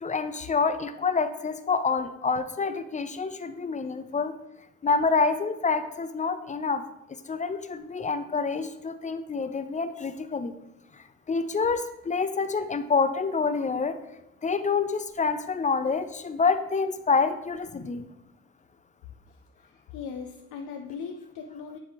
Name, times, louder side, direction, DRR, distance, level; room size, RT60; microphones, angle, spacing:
voice 1, 0.0-4.3 4.8-6.8 7.3-10.5 11.3-14.0 14.4-18.1, left 4 dB, 25° left, 10 dB, 0.4 m, -27 dB
voice 2, 19.3-21.8, left 6 dB, 85° left, 3 dB, 0.6 m, -40 dB
9.7 x 3.2 x 3.4 m, 0.87 s
cardioid pair, 90°, 30 cm